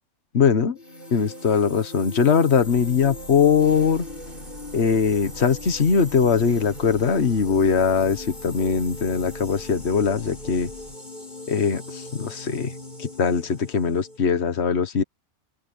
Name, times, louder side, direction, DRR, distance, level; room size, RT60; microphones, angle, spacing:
voice 1, 0.3-0.8 1.1-4.0 4.7-10.7 11.5-12.7 13.0-15.0, left 6 dB, 60° left, 1.6 m, -21 dB
sound 1, 0.7-14.2, left 1 dB, 45° left, 5.8 m, -39 dB
sound 2, 2.6-11.0, equal, 15° left, 4.6 m, -46 dB
open air
omnidirectional pair, 1.3 m